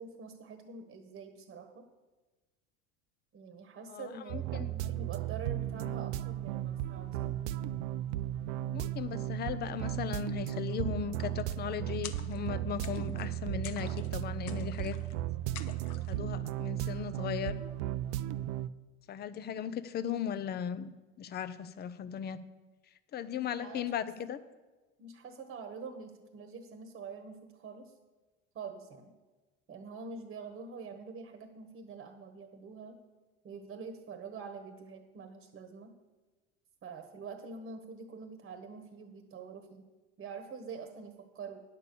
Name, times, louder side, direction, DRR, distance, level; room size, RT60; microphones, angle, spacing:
voice 1, 0.0-1.8 3.3-7.3 23.6-23.9 25.0-27.9 28.5-29.1 29.7-33.0 33.4-35.9 36.8-39.9 40.2-41.6, right 5 dB, 35° right, 6 dB, 1.3 m, -45 dB
voice 2, 3.9-4.9 8.7-15.0 16.1-17.6 19.1-22.4 23.1-24.4, left 8 dB, 30° left, 14 dB, 0.6 m, -37 dB
sound 1, 4.3-18.7, right 13 dB, 80° right, 0.5 m, -35 dB
sound 2, 12.0-12.5 12.8-13.3 13.6-14.1 14.5-15.1 15.5-16.2, left 10 dB, 75° left, 0.9 m, -48 dB
9.9 x 6.7 x 6.8 m, 1.2 s
supercardioid pair, 125°, 33 cm